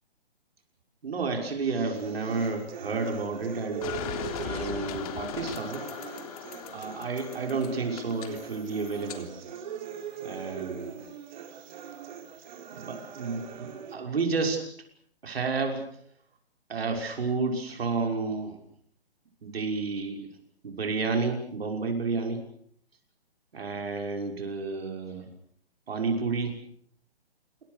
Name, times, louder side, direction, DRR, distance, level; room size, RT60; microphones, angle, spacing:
voice 1, 1.0-3.9 4.4-5.8 6.7-9.3 10.2-10.9 12.7-14.6 15.2-15.8 16.7-18.6 19.4-20.3 20.6-22.4 23.5-25.3 25.9-26.6, right 4 dB, 70° right, 3 dB, 6.0 m, -31 dB
sound 1, 1.9-13.9, right 8 dB, 45° right, 4.4 m, -41 dB
sound 2, 3.8-9.2, left 9 dB, 35° left, 3.4 m, -38 dB
28.0 x 23.5 x 6.8 m, 0.65 s
hypercardioid pair, 145°, 32 cm